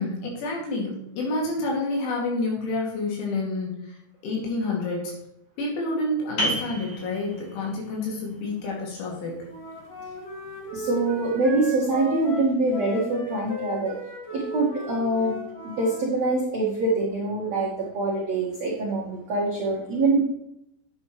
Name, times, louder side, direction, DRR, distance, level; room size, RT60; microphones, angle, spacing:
voice 1, 0.0-4.0 4.2-5.1 5.6-9.5, left 2 dB, 75° left, -2 dB, 4.9 m, -29 dB
sound 1, 6.4-11.7, equal, 60° left, 1.7 m, -35 dB
Wind instrument woodwind instrument, 9.5-16.0, equal, 45° left, 2.2 m, -36 dB
voice 2, 10.7-13.9 14.3-15.4 15.6-20.2, right 2 dB, 70° right, -3 dB, 1.6 m, -24 dB
10.5 x 8.2 x 3.2 m, 0.78 s
omnidirectional pair, 5.7 m